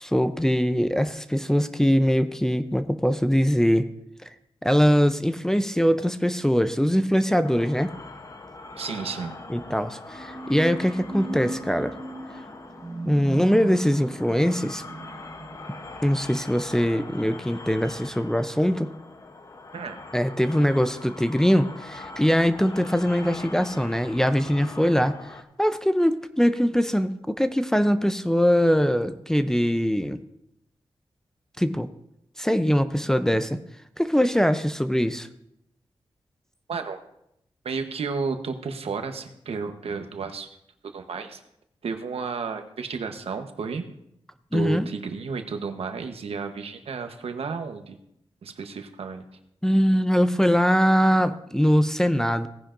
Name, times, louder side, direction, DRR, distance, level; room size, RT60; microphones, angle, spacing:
voice 1, 0.0-3.9 4.6-7.9 9.5-11.9 13.0-14.8 16.0-18.9 20.1-25.2 25.6-30.2 31.6-31.9 32.4-33.6 34.0-35.3 44.5-44.9 49.6-52.5, equal, 5° left, 9 dB, 0.5 m, -22 dB
sound 1, 7.4-25.4, left 3 dB, 35° left, 0.8 m, -42 dB
voice 2, 8.8-9.4 19.7-20.0 36.7-37.0 37.6-40.5 40.8-41.4 41.8-43.8 44.5-48.0 48.4-49.4, right 5 dB, 80° right, 7 dB, 1.0 m, -32 dB
sound 2, 8.9-18.1, right 2 dB, 20° right, 0.8 m, -38 dB
17.5 x 9.9 x 2.5 m, 0.77 s
wide cardioid pair, 120°, 10 cm